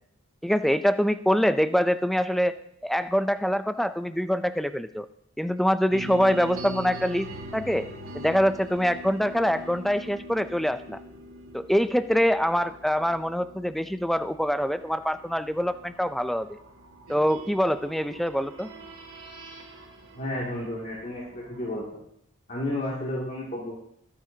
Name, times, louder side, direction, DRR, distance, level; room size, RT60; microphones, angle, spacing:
voice 1, 0.4-2.5 2.8-5.1 5.4-7.3 7.5-7.9 8.1-11.0 11.5-16.6 17.1-18.7, equal, ahead, 11 dB, 0.4 m, -24 dB
sound 1, 5.9-21.8, right 1 dB, 80° right, 2.4 m, -43 dB
voice 2, 20.1-22.0 22.5-23.8, left 1 dB, 40° left, -5 dB, 2.4 m, -32 dB
23.5 x 9.8 x 2.8 m, 0.71 s
head